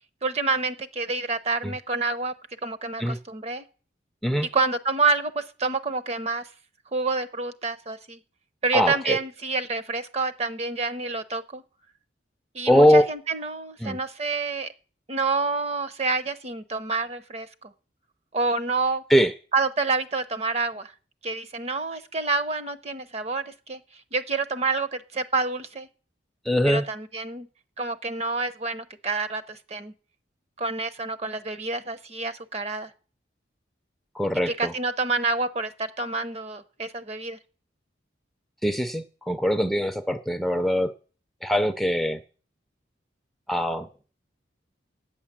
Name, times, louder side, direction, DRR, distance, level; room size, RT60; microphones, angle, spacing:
voice 1, 0.2-2.3 2.6-3.6 4.5-6.4 6.9-8.2 8.6-11.6 12.5-14.7 15.1-17.7 18.3-19.0 19.5-20.9 21.2-23.8 24.1-25.9 26.6-27.5 27.8-29.9 30.6-32.9 34.5-37.4, right 3 dB, 35° right, 10 dB, 0.8 m, -28 dB
voice 2, 8.7-9.2 12.7-13.0 13.8-14.0 19.1-19.3 26.5-26.8 34.2-34.7 38.6-40.9 41.4-42.2 43.5-43.9, equal, ahead, 7 dB, 0.5 m, -22 dB
8.9 x 8.7 x 7.4 m, 0.39 s
head